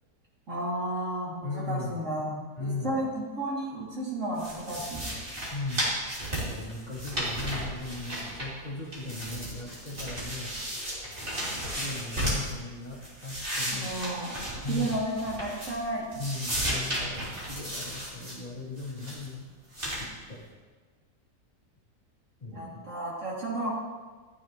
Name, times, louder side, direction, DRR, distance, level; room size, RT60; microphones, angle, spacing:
voice 1, 0.5-5.0 13.7-16.1 22.5-23.7, right 1 dB, 50° right, -5 dB, 2.8 m, -33 dB
voice 2, 1.4-2.1 2.6-3.0 5.5-6.0 6.5-10.6 11.3-13.9 14.6-15.0 16.1-19.5 19.9-20.4 22.4-22.8, left 2 dB, 25° left, -8 dB, 2.7 m, -37 dB
sound 1, 4.4-8.7 8.9-12.5 12.9-15.9 16.1-18.4 18.8-19.3 19.7-20.0, equal, 30° right, 3.3 m, -34 dB
14.0 x 9.6 x 3.0 m, 1.4 s
omnidirectional pair, 1.8 m